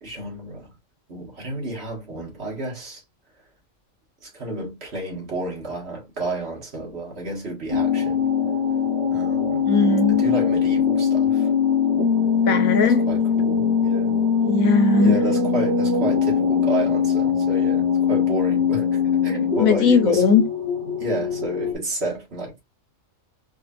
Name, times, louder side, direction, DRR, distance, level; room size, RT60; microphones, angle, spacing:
voice 1, 0.0-0.7 1.1-3.0 4.2-8.2 9.1-9.7 10.1-11.5 12.8-14.2 15.0-20.4 21.0-22.6, right 2 dB, 50° right, 2.0 m, -31 dB
sound 1, 7.7-21.7, left 6 dB, 85° right, 1.9 m, -21 dB
voice 2, 9.6-10.2 12.5-13.0 14.5-15.2 19.6-20.4, left 4 dB, 90° left, 1.4 m, -18 dB
4.7 x 2.9 x 2.5 m
omnidirectional pair, 1.4 m